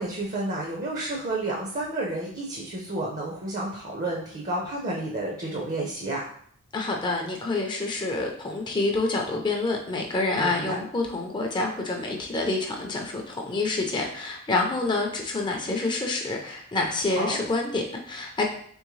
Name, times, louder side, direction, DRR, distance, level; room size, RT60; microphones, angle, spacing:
voice 1, 0.0-6.3 10.4-10.8 17.2-17.4, right 2 dB, 35° right, -1 dB, 0.6 m, -31 dB
voice 2, 6.7-18.4, left 2 dB, 20° left, 1 dB, 0.4 m, -27 dB
3.5 x 3.3 x 3.1 m, 0.62 s
head